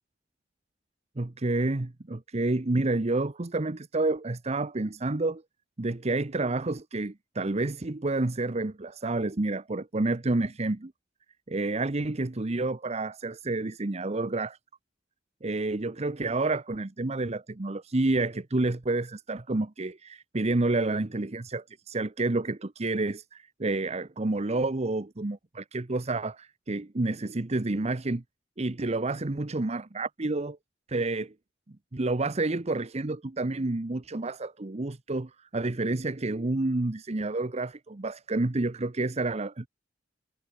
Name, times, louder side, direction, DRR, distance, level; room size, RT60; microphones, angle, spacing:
voice 1, 1.2-5.4 5.8-10.9 11.5-14.6 15.4-28.2 28.6-30.6 30.9-31.3 31.9-39.7, right 2 dB, 35° right, 0.9 m, -29 dB
head